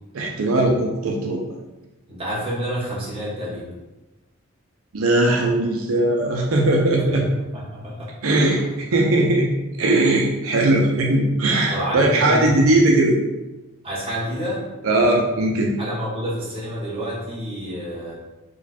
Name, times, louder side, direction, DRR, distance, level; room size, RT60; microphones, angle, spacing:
voice 1, 0.1-1.4 4.9-7.3 8.2-9.5 9.8-13.2 14.8-15.7, right 2 dB, 85° right, 0 dB, 0.6 m, -19 dB
voice 2, 2.1-3.7 7.0-7.2 7.5-8.1 11.7-12.6 13.8-14.6 15.8-18.1, equal, 25° right, -7 dB, 1.3 m, -28 dB
4.6 x 2.3 x 4.2 m, 1.1 s
head